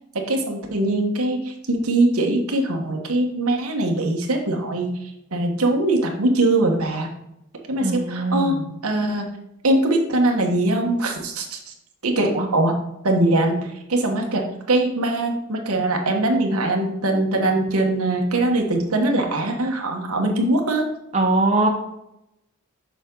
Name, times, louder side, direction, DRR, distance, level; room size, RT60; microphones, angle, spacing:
voice 1, 0.1-4.9 5.3-7.1 7.7-8.6 8.8-9.3 9.6-11.7 12.0-12.8 13.0-20.8, right 2 dB, 80° right, 2 dB, 1.3 m, -22 dB
voice 2, 7.8-8.6 12.2-12.4 21.1-21.7, right 2 dB, 30° right, 0 dB, 1.0 m, -21 dB
7.1 x 6.2 x 3.9 m, 0.82 s
head